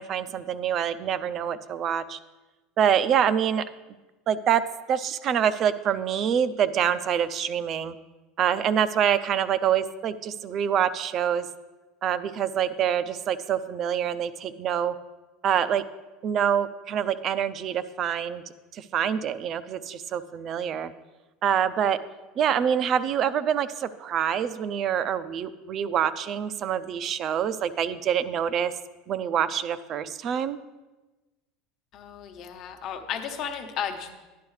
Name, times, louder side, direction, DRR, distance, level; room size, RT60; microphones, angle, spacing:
voice 1, 0.0-2.2 2.8-3.6 4.3-4.6 4.9-8.0 8.4-11.5 12.0-14.9 15.4-15.8 16.2-18.4 18.7-20.9 21.4-22.0 22.4-28.7 29.1-30.6, right 8 dB, 40° right, 14 dB, 0.5 m, -26 dB
voice 2, 31.9-34.2, left 8 dB, 45° left, 5 dB, 1.0 m, -34 dB
12.0 x 10.0 x 3.2 m, 1.2 s
supercardioid pair, 140°, 0 cm